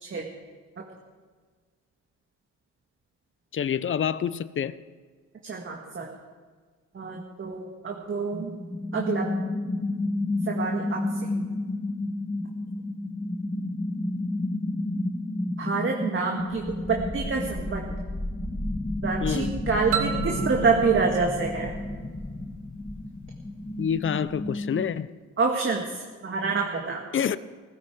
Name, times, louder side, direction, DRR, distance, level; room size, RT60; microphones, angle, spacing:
voice 1, 3.5-4.8 19.2-19.5 23.8-25.1 27.1-27.4, left 8 dB, 40° left, 0.7 m, -27 dB
voice 2, 5.4-6.1 6.9-8.5 8.9-9.3 10.5-11.0 11.3-11.4 15.6-17.8 19.0-21.7 25.4-27.0, right 4 dB, 40° right, 1.9 m, -27 dB
sound 1, 8.3-24.9, left 2 dB, 15° left, 1.0 m, -31 dB
sound 2, 19.9-22.6, right 8 dB, 75° right, 1.6 m, -33 dB
17.0 x 15.5 x 4.8 m
cardioid pair, 90°, 30 cm